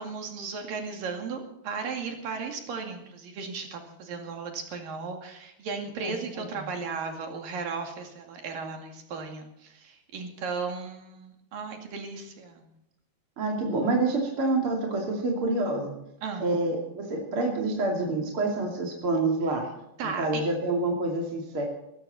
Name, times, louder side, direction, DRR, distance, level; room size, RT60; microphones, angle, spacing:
voice 1, 0.0-12.7 16.2-16.5 20.0-20.4, right 5 dB, 55° right, 3 dB, 3.5 m, -36 dB
voice 2, 6.0-6.4 13.4-15.9 16.4-19.6 20.2-21.6, right 2 dB, 35° right, 0 dB, 2.6 m, -27 dB
19.0 x 15.0 x 4.2 m, 0.83 s
omnidirectional pair, 5.4 m